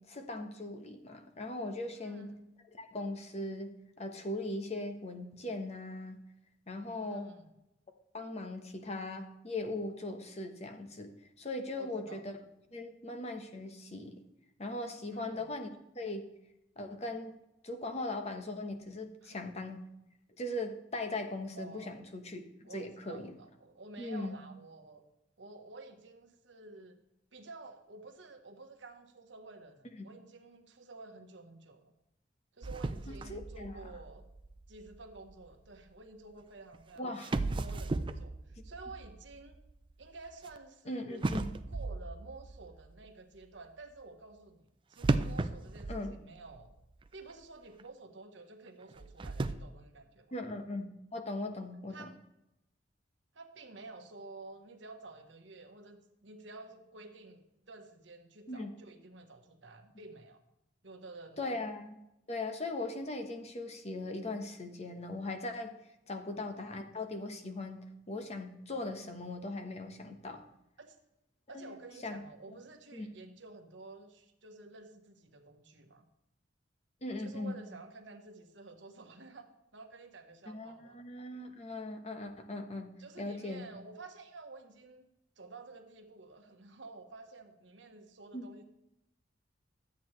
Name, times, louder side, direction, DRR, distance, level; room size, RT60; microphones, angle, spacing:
voice 1, 0.1-2.3 2.8-3.7 4.0-6.2 6.7-7.3 8.1-12.3 12.7-14.2 14.6-15.7 15.9-16.3 16.8-17.3 17.6-19.8 20.4-23.3 24.0-24.4 33.1-33.8 37.0-37.3 40.9-41.4 45.9-46.1 50.3-52.0 58.5-58.7 61.4-62.0 62.3-65.7 66.1-70.4 71.5-72.2 72.9-73.1 77.0-77.6 80.5-83.8 88.3-88.5, left 2 dB, 35° left, 5 dB, 1.0 m, -39 dB
voice 2, 2.0-2.4 6.9-7.5 11.7-12.2 15.1-15.5 19.2-19.4 21.6-22.0 22.6-25.0 25.4-27.0 27.3-31.9 32.5-34.2 34.7-39.6 40.0-46.7 47.1-50.3 51.9-52.1 53.3-60.4 60.8-61.6 66.1-66.3 70.8-71.0 71.5-76.0 77.1-81.0 83.0-85.1 85.4-88.6, right 3 dB, 75° right, 5 dB, 1.2 m, -51 dB
sound 1, 32.6-35.8 36.7-36.8 37.2-40.6 41.2-43.1 45.0-46.8 47.1-47.2 47.8-47.9 48.9-49.6, right 2 dB, 25° right, 0.4 m, -36 dB
12.5 x 8.5 x 3.2 m, 0.87 s
head